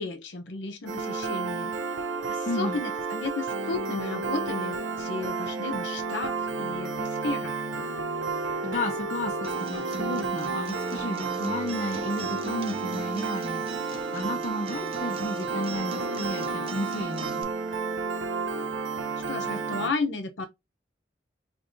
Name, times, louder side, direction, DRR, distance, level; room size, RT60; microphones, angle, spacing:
voice 1, 0.0-1.7 2.3-7.6 19.3-20.5, left 3 dB, 75° left, 0.7 m, -33 dB
Piano, 0.9-19.9, right 4 dB, 85° right, 0.5 m, -31 dB
voice 2, 2.5-2.8 8.4-17.5, left 1 dB, 40° left, 0.6 m, -33 dB
Acoustic guitar, 9.4-17.4, right 3 dB, 30° right, 0.5 m, -39 dB
5.1 x 2.6 x 2.5 m
head